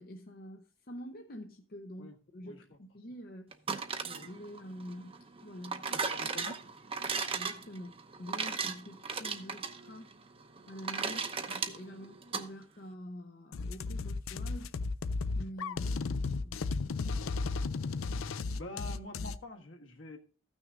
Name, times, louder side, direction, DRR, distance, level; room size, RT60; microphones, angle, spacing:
voice 1, 0.0-3.5 4.0-6.3 7.3-10.1 10.7-14.7 15.4-16.9, equal, 45° left, 0.7 m, -47 dB
sound 1, 3.5-12.5, right 5 dB, 30° right, 0.7 m, -37 dB
voice 2, 5.9-6.6 18.5-20.2, left 2 dB, 65° left, 1.5 m, -46 dB
sound 2, 13.5-19.4, left 4 dB, 85° left, 0.5 m, -34 dB
14.5 x 6.3 x 3.7 m
head